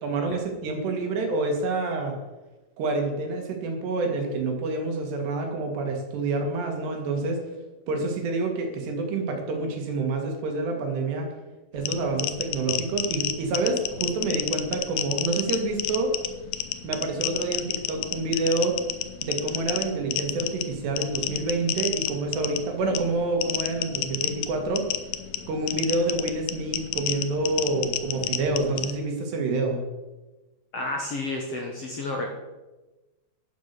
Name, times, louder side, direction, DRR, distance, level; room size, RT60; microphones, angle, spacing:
voice 1, 0.0-2.2 2.8-7.4 7.9-11.3 11.7-16.1 16.8-18.7 19.2-24.9 25.5-29.8, right 3 dB, 85° right, 2 dB, 4.3 m, -27 dB
sound 1, 11.8-28.9, left 12 dB, 85° left, 2.9 m, -31 dB
voice 2, 30.7-32.4, left 2 dB, 55° left, 0 dB, 1.8 m, -31 dB
12.0 x 8.7 x 6.9 m, 1.1 s
omnidirectional pair, 4.7 m